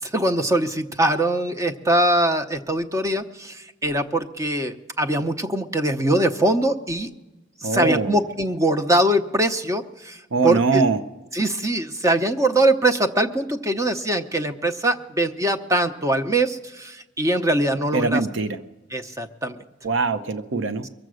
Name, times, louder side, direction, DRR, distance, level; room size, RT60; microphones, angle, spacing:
voice 1, 0.0-7.1 7.6-10.8 11.3-18.2 18.9-19.6, right 1 dB, 15° right, 7 dB, 0.7 m, -22 dB
voice 2, 7.6-8.2 10.3-11.0 17.9-18.6 19.8-20.9, right 4 dB, 80° right, 11 dB, 0.7 m, -22 dB
23.0 x 7.6 x 6.3 m, 1.1 s
head